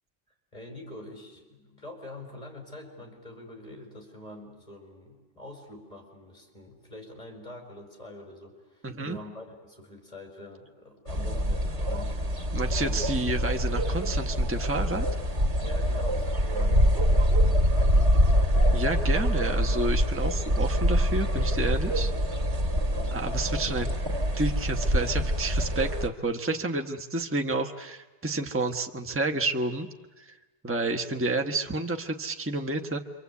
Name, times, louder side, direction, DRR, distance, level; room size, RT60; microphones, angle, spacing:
voice 1, 0.5-12.2 12.8-13.3 15.6-17.6 22.8-23.2, left 1 dB, 35° left, 2 dB, 4.8 m, -45 dB
voice 2, 8.8-9.2 12.5-15.1 18.7-22.1 23.1-23.9 24.4-29.9 30.2-30.4 30.6-33.0, right 2 dB, 10° right, 5 dB, 1.1 m, -30 dB
sound 1, 11.1-26.1, equal, 90° right, 2.2 m, -25 dB
27.5 x 25.0 x 8.4 m, 1.2 s
omnidirectional pair, 1.2 m